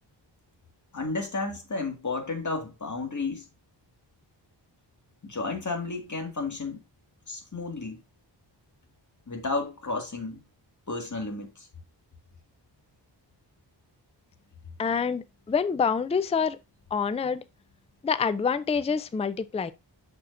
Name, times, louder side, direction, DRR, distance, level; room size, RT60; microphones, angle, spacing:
voice 1, 0.9-3.4 5.2-6.8 7.3-8.0 9.3-10.4 10.9-11.7, left 3 dB, 40° left, 1.9 m, -32 dB
voice 2, 14.8-16.6 16.9-17.4 18.0-19.7, left 6 dB, 15° left, 0.4 m, -26 dB
6.8 x 6.2 x 2.5 m
wide cardioid pair, 90°, 44 cm